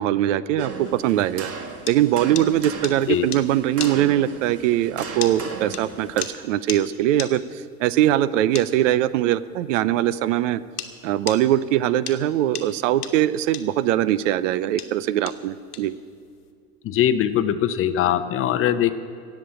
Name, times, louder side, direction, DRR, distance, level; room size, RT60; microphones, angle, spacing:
voice 1, 0.0-1.5 1.9-10.6 11.0-16.0, right 12 dB, 55° right, 17 dB, 0.6 m, -21 dB
sound 1, 0.6-6.2, right 5 dB, 30° right, 1.9 m, -37 dB
sound 2, 1.3-10.9 11.3-16.5, left 8 dB, 85° left, 1.3 m, -35 dB
voice 2, 16.8-18.9, left 10 dB, 30° left, 11 dB, 0.7 m, -21 dB
16.5 x 7.3 x 8.6 m, 2.2 s
hypercardioid pair, 90°, 45 cm